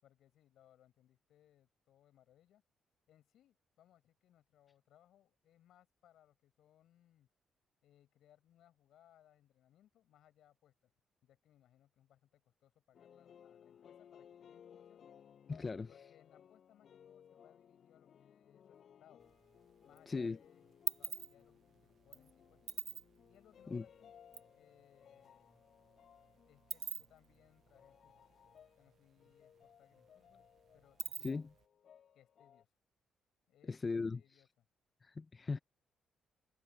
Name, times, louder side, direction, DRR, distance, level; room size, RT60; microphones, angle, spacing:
voice 1, 0.0-2.6 3.1-7.3 7.8-10.9 11.2-15.0 15.9-19.2 19.8-22.6 23.3-24.1 24.6-25.6 26.5-28.3 28.8-30.4 30.7-31.5 32.1-32.7 33.5-33.8 34.1-34.7, left 11 dB, 80° left, 6.7 m, -69 dB
sound 1, 12.9-32.6, left 8 dB, 55° left, 7.0 m, -62 dB
voice 2, 15.5-15.9 20.1-20.4 23.7-23.8 31.2-31.5 33.7-34.2 35.0-35.6, left 4 dB, 30° left, 0.4 m, -38 dB
sound 2, 19.2-20.0 20.3-24.5 24.8-24.9 25.1-29.0 29.3-29.4 29.7-31.6, right 8 dB, 55° right, 0.4 m, -44 dB
cardioid pair, 115°, 0 cm